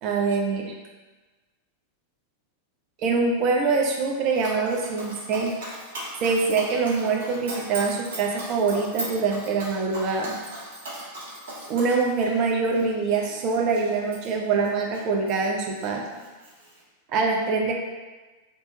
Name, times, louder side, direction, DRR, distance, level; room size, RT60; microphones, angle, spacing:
voice 1, 0.0-0.7 3.0-5.5 6.2-10.4 11.7-16.0 17.1-17.7, right 4 dB, 40° right, 0 dB, 0.7 m, -24 dB
Dog, 4.3-15.4 15.8-16.8, right 1 dB, 55° right, 1.2 m, -39 dB
3.5 x 3.1 x 3.8 m, 1.3 s
figure-of-eight pair, 90°, 0 cm